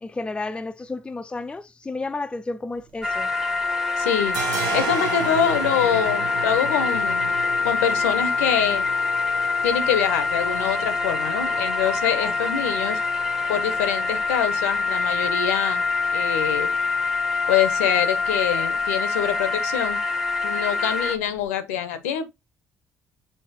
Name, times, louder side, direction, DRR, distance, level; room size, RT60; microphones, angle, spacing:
voice 1, 0.0-3.3 12.2-12.3, left 3 dB, 15° left, 0.4 m, -32 dB
sound 1, 2.8-3.7 3.9-21.5, right 6 dB, 60° right, 0.8 m, -37 dB
sound 2, 3.0-21.2, left 4 dB, ahead, 0.8 m, -25 dB
voice 2, 4.0-4.4 4.7-7.3 7.6-8.8 9.6-13.0 13.5-15.8 16.1-16.7 17.5-20.0 20.4-22.2, left 9 dB, 75° left, 0.6 m, -25 dB
6.8 x 2.7 x 2.8 m
figure-of-eight pair, 45°, 8 cm